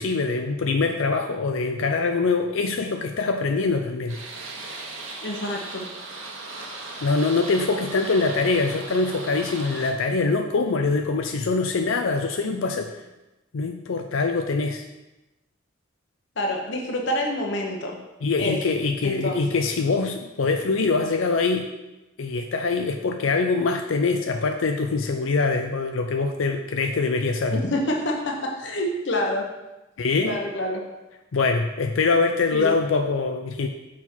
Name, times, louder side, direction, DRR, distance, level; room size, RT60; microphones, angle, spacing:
voice 1, 0.0-4.2 7.0-13.0 13.5-14.9 18.2-21.7 22.2-27.6 30.0-30.4 31.3-33.7, left 4 dB, 80° left, 5 dB, 0.5 m, -24 dB
sound 1, 4.1-9.9, right 3 dB, 90° right, 1.3 m, -37 dB
voice 2, 5.2-5.9 16.4-18.0 18.4-18.6 19.0-19.6 27.5-29.5 30.2-30.9 32.5-32.8, left 1 dB, 60° left, 1 dB, 1.1 m, -27 dB
6.0 x 5.9 x 4.5 m, 1.0 s
head